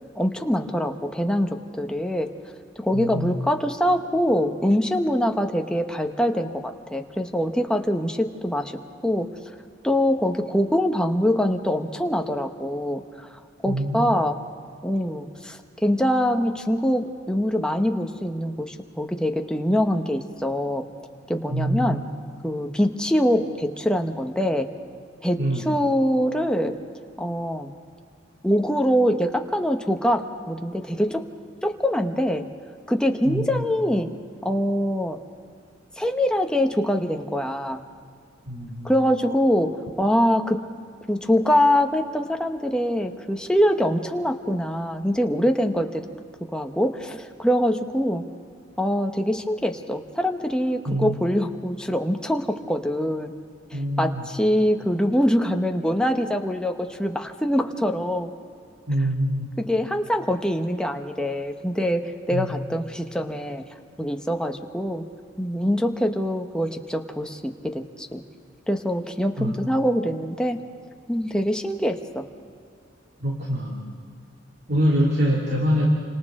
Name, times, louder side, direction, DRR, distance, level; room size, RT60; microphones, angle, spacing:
voice 1, 0.2-2.3 2.8-9.3 9.8-13.0 13.6-14.4 14.8-20.9 21.3-22.0 22.4-24.7 25.2-26.8 27.2-27.7 28.4-31.3 31.6-32.5 32.9-34.1 34.4-35.2 36.0-37.8 38.8-40.6 41.1-46.1 46.4-48.3 48.8-53.3 53.7-58.3 59.6-63.6 64.0-65.0 65.4-68.2 68.7-70.6 71.1-72.3, equal, 5° left, 4 dB, 1.0 m, -24 dB
voice 2, 2.9-3.3 13.6-14.1 21.5-22.0 25.4-25.7 33.2-33.6 38.5-38.9 50.9-51.2 53.7-54.3 58.9-59.5 62.3-62.5 69.4-69.5 73.2-73.9 74.7-75.9, equal, 55° right, -2 dB, 2.6 m, -25 dB
29.0 x 26.0 x 3.7 m, 2.3 s
head